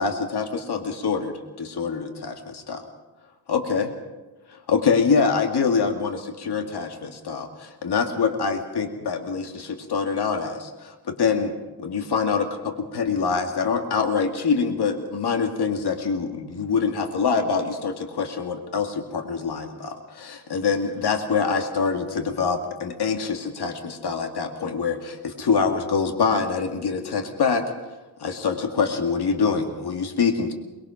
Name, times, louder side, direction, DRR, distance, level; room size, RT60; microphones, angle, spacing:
voice 1, 0.0-2.8 3.5-3.9 4.5-27.6 28.2-30.5, left 5 dB, 65° left, 5 dB, 2.2 m, -25 dB
22.5 x 21.5 x 5.8 m, 1.1 s
wide cardioid pair, 95°, 42 cm